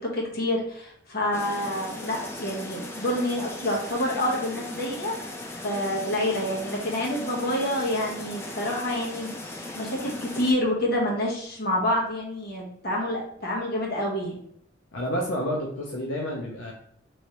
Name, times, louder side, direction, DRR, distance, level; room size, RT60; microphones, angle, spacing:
voice 1, 0.1-5.1 5.6-14.4, left 1 dB, 50° left, -3 dB, 1.0 m, -28 dB
sound 1, 1.3-10.5, left 2 dB, 15° left, 0.4 m, -38 dB
voice 2, 14.9-16.7, equal, 75° left, -1 dB, 0.6 m, -29 dB
3.2 x 3.0 x 2.8 m, 0.66 s
head